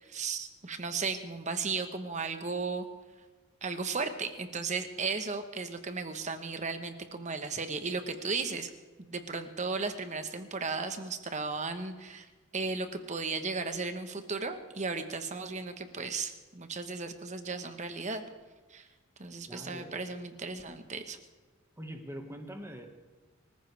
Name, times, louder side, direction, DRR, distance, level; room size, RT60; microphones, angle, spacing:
voice 1, 0.0-2.9 3.6-8.7 9.0-12.3 12.5-18.2 18.7-18.9 19.2-21.2, right 4 dB, 35° right, 8 dB, 1.2 m, -35 dB
voice 2, 19.5-20.0 21.8-22.9, equal, 15° right, 4 dB, 1.7 m, -43 dB
24.5 x 15.0 x 3.4 m, 1.3 s
head